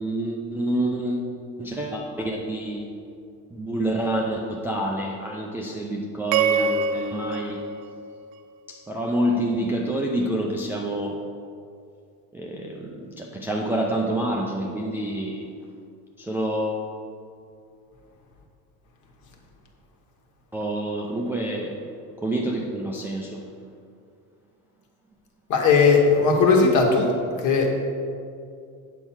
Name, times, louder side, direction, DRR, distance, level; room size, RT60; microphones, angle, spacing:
voice 1, 0.0-1.3 1.6-2.9 3.5-7.7 8.7-11.2 12.3-15.5 16.2-16.8 20.5-21.7 22.2-23.4, right 1 dB, 5° right, -2 dB, 0.4 m, -27 dB
sound 1, 6.3-8.7, right 5 dB, 80° right, 0.6 m, -26 dB
voice 2, 25.5-27.1 27.4-27.7, left 4 dB, 50° left, 1 dB, 1.5 m, -17 dB
8.1 x 4.5 x 7.1 m, 2.4 s
cardioid pair, 155°, 38 cm